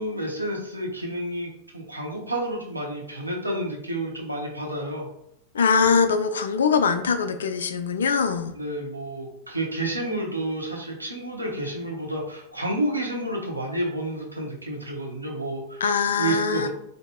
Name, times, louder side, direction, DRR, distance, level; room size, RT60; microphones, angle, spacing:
voice 1, 0.0-5.1 8.5-15.8 16.2-16.7, right 1 dB, 85° right, -1 dB, 0.8 m, -30 dB
voice 2, 5.5-8.5 15.8-16.7, left 5 dB, 65° left, 8 dB, 0.3 m, -22 dB
4.5 x 2.6 x 2.2 m, 0.77 s
figure-of-eight pair, 90°, 0 cm